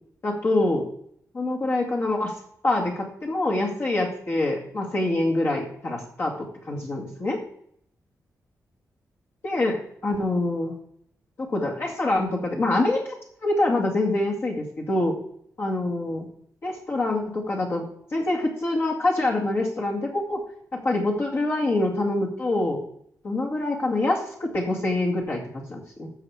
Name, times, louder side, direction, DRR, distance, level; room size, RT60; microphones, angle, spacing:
voice 1, 0.2-0.9 1.3-2.3 2.6-7.4 9.4-10.7 11.4-13.1 13.4-15.1 15.6-16.3 16.6-17.9 18.1-20.4 20.7-22.8 23.2-26.1, left 2 dB, 40° left, -1 dB, 2.0 m, -25 dB
12.5 x 7.0 x 4.7 m, 0.66 s
wide cardioid pair, 180°, 7 cm